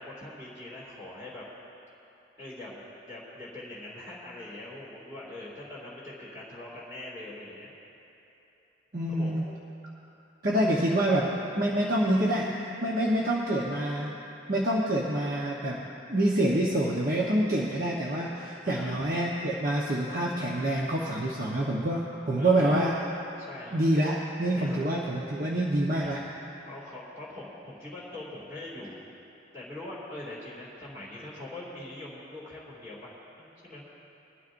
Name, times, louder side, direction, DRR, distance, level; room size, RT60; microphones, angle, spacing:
voice 1, 0.0-1.4 2.4-2.8 3.1-7.7 9.1-9.3 10.6-10.8 18.6-19.1 21.2-21.3 22.4-22.8 23.4-23.8 24.6-24.8 26.6-29.0 29.5-33.8, left 1 dB, 15° right, -8 dB, 2.4 m, -42 dB
voice 2, 8.9-9.5 10.4-11.3 11.6-14.1 14.5-15.8 16.1-22.9 23.7-26.2, right 1 dB, 45° right, -4 dB, 1.1 m, -26 dB
22.0 x 12.5 x 2.6 m, 3.0 s
head